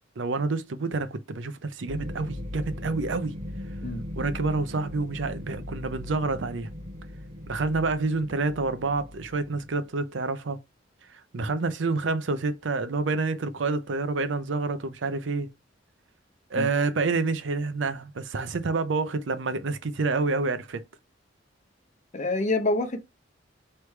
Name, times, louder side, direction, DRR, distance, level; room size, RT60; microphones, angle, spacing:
voice 1, 0.2-3.3 4.1-6.7 7.5-10.6 11.1-15.5 16.5-20.8, right 3 dB, 80° right, 0.6 m, -28 dB
sound 1, 1.9-9.8, left 1 dB, 40° right, 1.1 m, -39 dB
voice 2, 22.1-23.0, left 2 dB, 40° left, 0.8 m, -26 dB
3.3 x 3.2 x 4.4 m
head